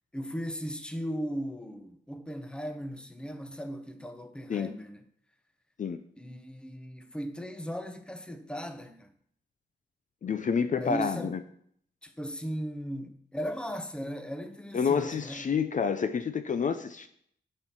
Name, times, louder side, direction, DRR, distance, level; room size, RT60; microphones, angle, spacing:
voice 1, 0.1-5.0 6.2-9.1 10.7-11.3 12.0-15.5, equal, 5° left, 0.8 m, -37 dB
voice 2, 10.2-11.4 14.7-17.1, left 6 dB, 45° left, 0.5 m, -28 dB
10.0 x 4.5 x 6.0 m
wide cardioid pair, 140°, 19 cm